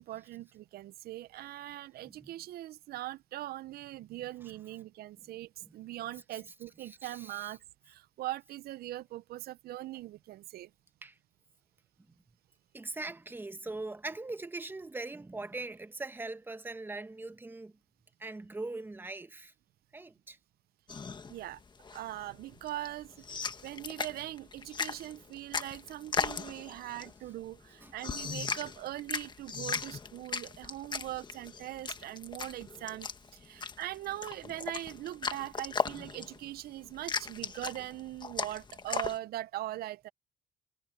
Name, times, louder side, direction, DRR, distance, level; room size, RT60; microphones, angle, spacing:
voice 1, 0.0-7.6 7.9-10.7 21.3-21.6 21.9-40.1, right 15 dB, 65° right, 0.6 m, -41 dB
voice 2, 6.8-7.5 11.0-11.2 12.7-17.7 18.2-19.5 19.9-20.4 27.8-27.9, right 2 dB, 10° right, 1.1 m, -41 dB
sound 1, 20.9-39.2, left 5 dB, 25° left, 1.5 m, -38 dB
cardioid pair, 110°, 17 cm